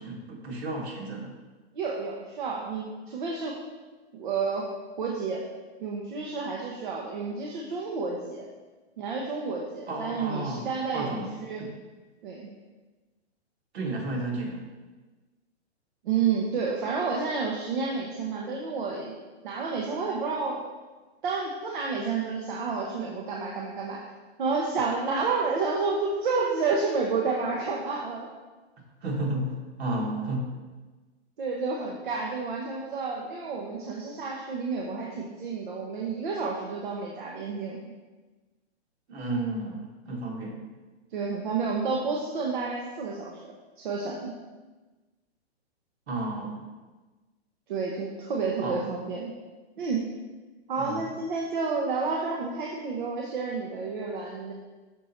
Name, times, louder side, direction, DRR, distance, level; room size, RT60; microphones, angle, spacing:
voice 1, 0.0-1.3 9.9-10.6 10.9-11.7 13.7-14.7 29.0-30.5 39.1-40.6 46.1-46.6 48.6-48.8 50.8-51.1, right 2 dB, 70° right, -1 dB, 1.8 m, -32 dB
voice 2, 1.7-3.6 4.1-4.7 5.0-5.4 5.8-8.5 9.0-11.1 11.4-11.7 12.2-12.5 16.0-19.2 19.4-20.6 21.2-24.0 24.4-28.3 31.4-37.8 41.1-44.3 47.7-49.3 49.8-50.0 50.7-54.5, right 4 dB, 45° right, -2 dB, 0.8 m, -30 dB
6.3 x 4.1 x 4.3 m, 1.2 s
hypercardioid pair, 170°, 33 cm